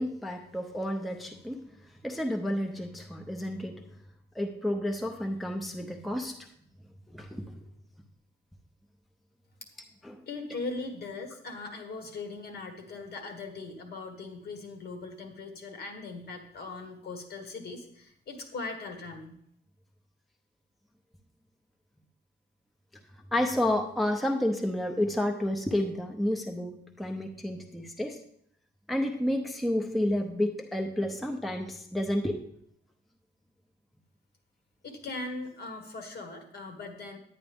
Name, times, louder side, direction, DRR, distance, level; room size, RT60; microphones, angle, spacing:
voice 1, 0.0-1.6 2.0-3.8 4.4-6.4 7.1-7.5 10.0-10.2 23.3-28.2 28.9-32.4, left 1 dB, ahead, 2 dB, 0.6 m, -30 dB
voice 2, 10.3-19.3 34.8-37.2, left 3 dB, 55° left, 4 dB, 1.6 m, -40 dB
10.0 x 9.5 x 3.5 m, 0.70 s
wide cardioid pair, 155°, 19 cm